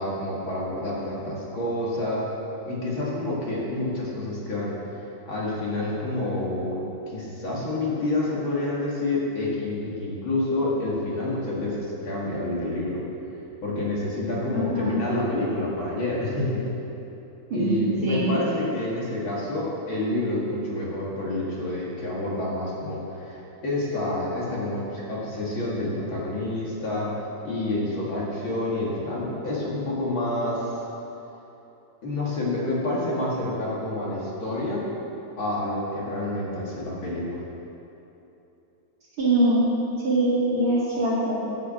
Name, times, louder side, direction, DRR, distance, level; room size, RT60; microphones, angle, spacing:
voice 1, 0.0-2.2 2.7-4.7 5.3-13.0 13.6-16.6 17.5-23.4 23.6-27.1 27.4-30.7 32.0-34.8 35.4-37.4, left 2 dB, 45° left, -5 dB, 2.6 m, -28 dB
voice 2, 14.5-15.0 17.5-18.3 39.2-39.6 40.0-41.5, right 1 dB, 45° right, -10 dB, 2.8 m, -23 dB
11.5 x 6.1 x 8.6 m, 3.0 s
omnidirectional pair, 3.3 m